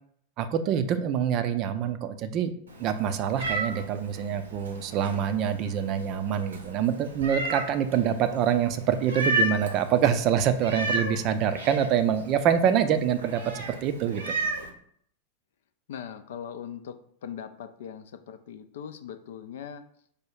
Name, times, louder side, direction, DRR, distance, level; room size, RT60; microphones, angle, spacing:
voice 1, 0.4-2.5 2.8-14.3, right 8 dB, 40° right, 10 dB, 0.4 m, -25 dB
Meow, 2.7-14.7, right 2 dB, 75° right, 0.8 m, -34 dB
voice 2, 15.9-16.9 17.2-19.8, left 8 dB, 60° left, 9 dB, 0.4 m, -40 dB
5.0 x 2.3 x 4.6 m, 0.62 s
figure-of-eight pair, 90°, 0 cm